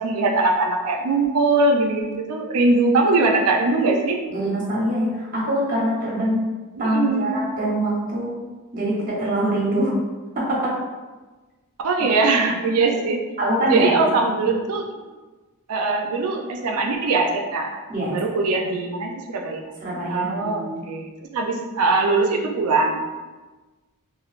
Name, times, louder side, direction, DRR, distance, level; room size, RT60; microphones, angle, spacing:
voice 1, 0.0-4.2 6.8-7.3 11.8-13.2 13.6-14.9 15.7-17.8 18.1-19.7 20.1-23.0, right 3 dB, 75° right, 2 dB, 0.4 m, -21 dB
voice 2, 4.3-6.5 6.8-8.3 8.7-9.9 10.3-10.8 12.8-12.9 13.4-14.6 17.9-18.2 19.8-20.9, right 1 dB, 40° right, -5 dB, 0.9 m, -24 dB
3.1 x 2.5 x 2.4 m, 1.2 s
head